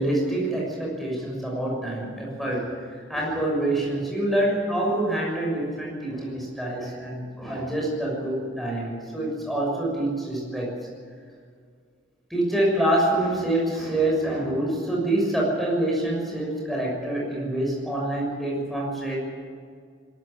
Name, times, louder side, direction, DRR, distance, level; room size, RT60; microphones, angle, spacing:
voice 1, 0.0-2.7 3.1-10.7 12.3-19.2, right 1 dB, ahead, -2 dB, 6.6 m, -26 dB
21.5 x 14.0 x 10.0 m, 2.1 s
head